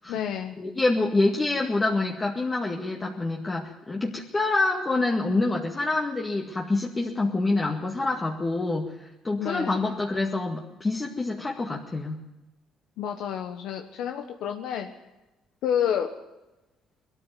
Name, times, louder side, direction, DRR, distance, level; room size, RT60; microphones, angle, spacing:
voice 1, 0.1-0.6 9.4-9.8 13.0-14.9 15.6-16.1, left 9 dB, 75° left, 5 dB, 1.3 m, -29 dB
voice 2, 0.6-12.2, left 2 dB, 20° left, 0 dB, 2.0 m, -26 dB
20.5 x 13.5 x 9.3 m, 1.0 s
cardioid pair, 110°, 0 cm